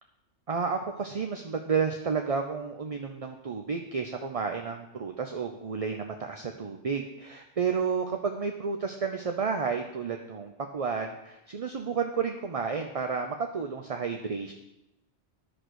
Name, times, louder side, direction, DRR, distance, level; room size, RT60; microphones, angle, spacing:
voice 1, 0.5-14.5, right 5 dB, 40° right, 5 dB, 0.6 m, -31 dB
10.5 x 6.3 x 6.3 m, 0.90 s
omnidirectional pair, 1.2 m